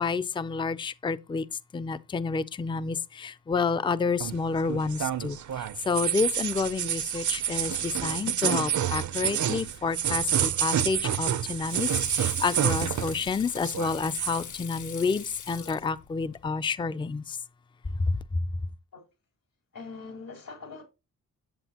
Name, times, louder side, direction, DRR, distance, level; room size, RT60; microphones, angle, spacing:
voice 1, 0.0-1.5 1.7-17.4 18.1-18.2, left 4 dB, 15° left, 0.3 m, -29 dB
sound 1, 4.2-13.3 13.6-14.4, right 9 dB, 60° right, 0.5 m, -28 dB
Water / Sink (filling or washing), 11.0-16.5, left 8 dB, 60° left, 0.7 m, -42 dB
voice 2, 19.7-20.8, left 4 dB, 85° left, 3.8 m, -42 dB
9.1 x 7.9 x 2.8 m
wide cardioid pair, 110°, 34 cm